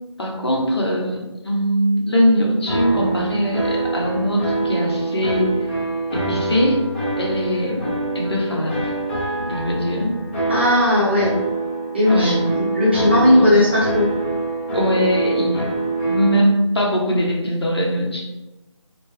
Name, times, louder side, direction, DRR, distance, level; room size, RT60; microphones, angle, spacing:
voice 1, 0.2-5.6 6.1-6.8 7.2-7.9 8.1-8.8 9.4-10.1 12.1-12.6 13.3-13.5 14.7-15.7 16.0-18.2, equal, 55° left, -2 dB, 0.9 m, -21 dB
sound 1, 2.7-16.4, right 2 dB, 20° left, 0.8 m, -25 dB
voice 2, 10.5-11.3 11.9-14.1, left 1 dB, 20° right, -8 dB, 0.8 m, -17 dB
4.2 x 2.1 x 3.2 m, 1.0 s
figure-of-eight pair, 170°, 16 cm